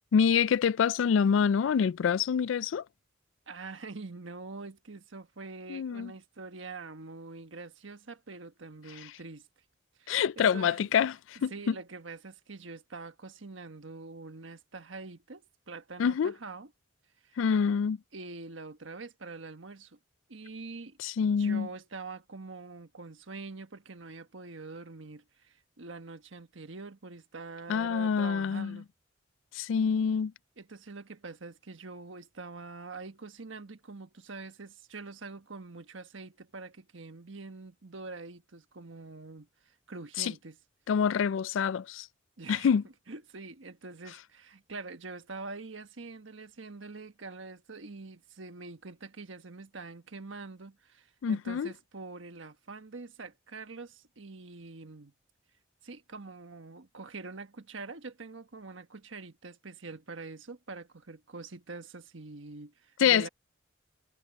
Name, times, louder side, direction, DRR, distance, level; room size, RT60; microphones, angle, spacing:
voice 1, 0.1-2.8 5.7-6.1 10.1-11.7 16.0-16.3 17.4-18.0 21.0-21.7 27.7-28.8 29.5-30.3 40.2-40.3 40.9-42.1 42.5-42.8 51.2-51.7 63.0-63.3, left 7 dB, 80° left, 0.3 m, -26 dB
voice 2, 3.5-9.5 10.0-10.8 11.5-16.7 17.2-17.4 18.1-20.0 20.3-21.0 21.3-28.9 30.6-40.6 42.4-42.7 43.1-55.1 55.8-63.3, right 3 dB, 80° right, 1.3 m, -45 dB
head